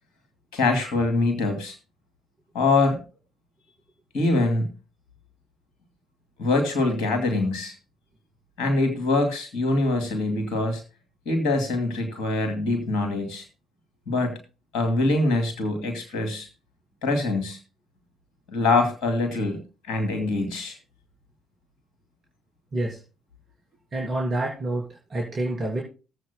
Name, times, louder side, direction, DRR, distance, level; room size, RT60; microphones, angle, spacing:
voice 1, 0.5-1.7 2.5-3.0 4.1-4.7 6.4-7.7 8.6-10.8 11.3-13.4 14.1-14.3 14.7-16.5 17.0-17.6 18.5-19.6 19.9-20.8, left 2 dB, 65° left, 5 dB, 2.3 m, -24 dB
voice 2, 23.9-25.8, right 2 dB, 45° right, -2 dB, 3.3 m, -28 dB
19.5 x 7.9 x 2.2 m, 0.31 s
figure-of-eight pair, 45°, 0 cm